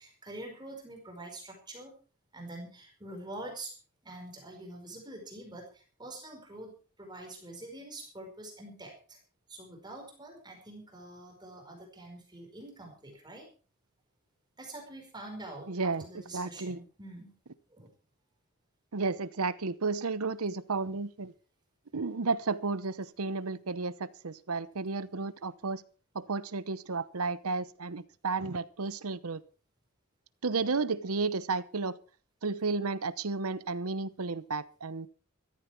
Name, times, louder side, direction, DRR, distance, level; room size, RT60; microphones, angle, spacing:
voice 1, 0.0-1.9 2.3-3.7 4.0-9.2 9.5-13.5 14.6-17.4 17.7-17.9, right 1 dB, 20° right, 4.9 m, -45 dB
voice 2, 15.7-16.8 18.9-21.3 21.9-25.8 26.1-29.4 30.4-32.0 32.4-35.1, right 4 dB, 90° right, 0.9 m, -32 dB
15.5 x 14.5 x 4.5 m
head